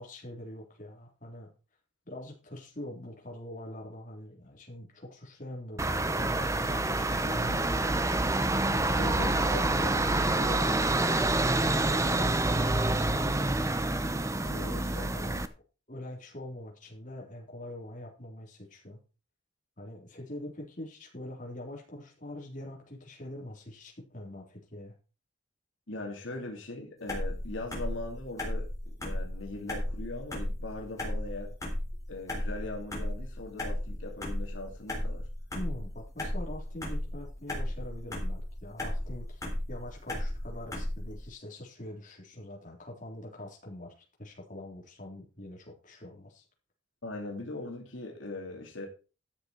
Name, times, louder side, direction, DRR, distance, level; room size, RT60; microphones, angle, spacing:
voice 1, 0.0-1.5 2.1-7.7 8.7-13.7 14.4-15.4 15.9-19.0 19.8-24.9 35.5-39.4 39.7-43.9 44.2-46.4, left 1 dB, 40° left, 3.7 m, -43 dB
sound 1, 5.8-15.5, right 2 dB, 15° right, 0.7 m, -27 dB
voice 2, 8.9-9.3 25.9-31.5 32.1-35.3 47.0-48.9, left 2 dB, 75° left, 2.7 m, -40 dB
sound 2, 27.1-41.2, left 1 dB, 15° left, 3.7 m, -35 dB
13.0 x 7.2 x 4.6 m
head